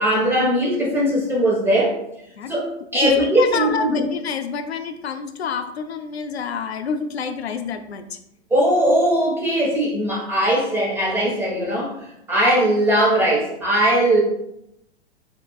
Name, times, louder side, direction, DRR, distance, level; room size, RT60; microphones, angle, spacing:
voice 1, 0.0-2.0 2.5-2.6 2.9-4.0 8.5-11.9 12.3-14.2, right 1 dB, 5° right, -5 dB, 1.2 m, -19 dB
voice 2, 3.0-8.2, left 5 dB, 70° left, 8 dB, 0.6 m, -28 dB
7.2 x 2.9 x 2.4 m, 0.82 s
figure-of-eight pair, 105°, 34 cm